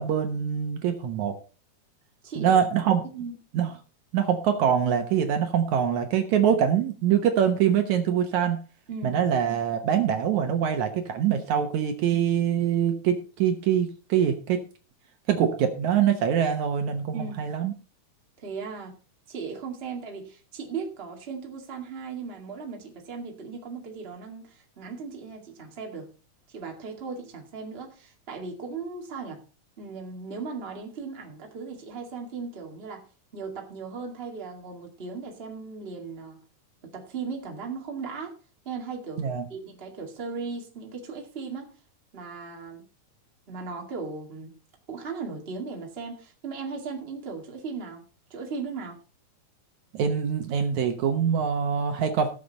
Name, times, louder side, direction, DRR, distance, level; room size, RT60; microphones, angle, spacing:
voice 1, 0.0-1.4 2.4-3.0 3.5-3.7 4.1-8.6 9.0-14.6 15.3-17.7 39.2-39.5 49.9-52.3, right 8 dB, 70° right, 6 dB, 2.3 m, -24 dB
voice 2, 2.2-2.6 3.1-3.4 8.9-9.2 17.1-17.4 18.4-19.0 19.3-26.1 26.5-29.4 29.8-33.0 33.3-36.4 36.8-38.3 38.6-41.7 42.1-42.8 43.5-44.5 44.9-48.0 48.3-49.0, right 4 dB, 20° right, 1 dB, 1.9 m, -37 dB
17.5 x 6.8 x 4.1 m, 0.36 s
omnidirectional pair, 3.7 m